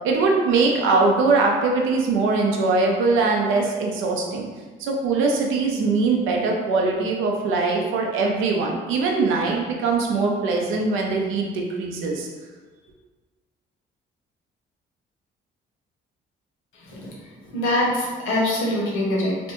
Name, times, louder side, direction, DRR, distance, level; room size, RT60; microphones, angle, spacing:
voice 1, 0.0-4.5 4.8-12.3, right 3 dB, 90° right, 0 dB, 0.5 m, -22 dB
voice 2, 17.5-19.4, left 1 dB, 85° left, -3 dB, 0.9 m, -23 dB
3.3 x 2.1 x 2.9 m, 1.4 s
cardioid pair, 90°, 20 cm